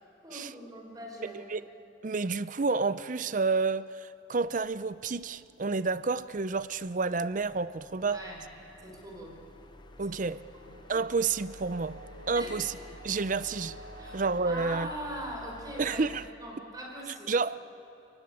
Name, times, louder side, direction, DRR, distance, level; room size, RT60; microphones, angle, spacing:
voice 1, 0.2-1.4 8.0-8.4 8.8-9.4 10.0-10.2 10.5-10.8 12.3-12.6 14.0-16.1 16.4-17.3, equal, 20° right, 4.9 m, -41 dB
voice 2, 1.2-1.6 2.0-8.2 10.0-10.4 10.9-12.0 12.3-12.7 13.0-13.8 14.1-14.9 15.8-16.2 17.3-17.6, right 4 dB, 40° right, 0.5 m, -30 dB
sound 1, 4.3-16.3, left 1 dB, 25° left, 0.6 m, -52 dB
sound 2, 8.7-15.2, right 1 dB, 65° right, 2.7 m, -51 dB
29.5 x 17.0 x 9.9 m
head